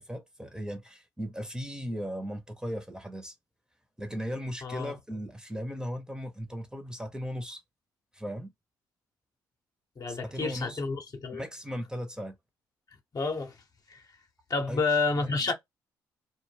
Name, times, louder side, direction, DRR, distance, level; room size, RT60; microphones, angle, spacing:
voice 1, 0.0-3.3 4.0-7.6 8.1-8.5 10.1-10.8 11.3-12.4 14.7-14.8 15.2-15.4, equal, 10° right, 0.8 m, -37 dB
voice 2, 4.6-5.0 10.0-11.4 13.1-13.6 13.9-14.1 14.5-15.5, left 4 dB, 45° left, 0.8 m, -30 dB
2.2 x 2.1 x 3.3 m
hypercardioid pair, 55°, 9 cm